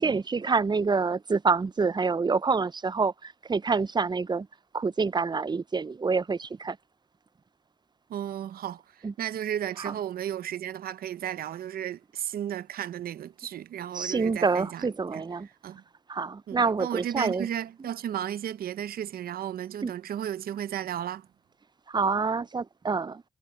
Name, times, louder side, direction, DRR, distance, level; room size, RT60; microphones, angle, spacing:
voice 1, 0.0-4.5 4.7-6.8 9.0-9.1 9.8-9.9 13.9-15.5 16.1-17.5 19.8-19.9 21.9-23.2, right 4 dB, 30° right, 0.5 m, -27 dB
voice 2, 8.1-14.9 15.1-15.2 15.6-15.8 16.5-21.3, right 10 dB, 85° right, 0.7 m, -34 dB
supercardioid pair, 45°, 15 cm